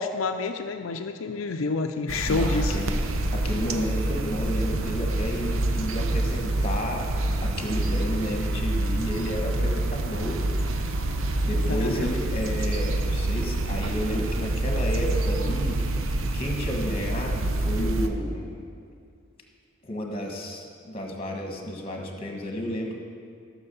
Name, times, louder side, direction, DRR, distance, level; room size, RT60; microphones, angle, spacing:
voice 1, 0.0-2.8 11.7-12.1, left 3 dB, 90° left, 5 dB, 0.5 m, -28 dB
sound 1, 2.1-18.1, right 1 dB, 85° right, 0.8 m, -27 dB
voice 2, 2.3-3.0 3.3-7.1 7.4-10.4 11.4-15.8 16.3-18.6 19.8-23.0, equal, 30° left, 2 dB, 1.4 m, -31 dB
14.5 x 6.2 x 6.9 m, 2.3 s
head